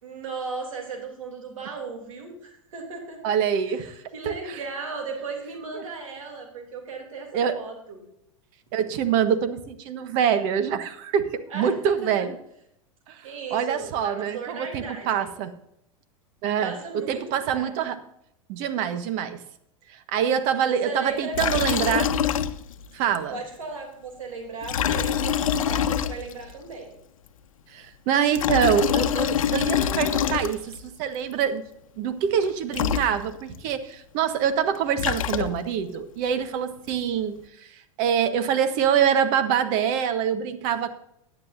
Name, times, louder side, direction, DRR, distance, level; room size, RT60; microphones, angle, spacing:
voice 1, 0.0-3.2 3.7-8.0 11.5-12.1 13.2-15.4 16.6-17.7 20.7-22.1 23.3-26.9, right 4 dB, 75° right, 2 dB, 3.0 m, -36 dB
voice 2, 3.2-3.9 4.2-4.6 7.3-7.6 8.7-12.3 13.1-13.2 13.5-15.5 16.4-18.0 18.5-19.4 19.9-22.1 22.9-23.4 27.7-31.6 32.0-37.3 38.0-40.9, right 8 dB, 50° right, 10 dB, 1.4 m, -25 dB
Liquid, 21.3-22.9 23.1-23.2 24.6-26.5 28.1-30.8 32.4-32.5 32.7-33.6 34.7-35.8, left 9 dB, 75° left, 0.8 m, -25 dB
16.5 x 10.0 x 2.6 m, 0.77 s
hypercardioid pair, 100°, 17 cm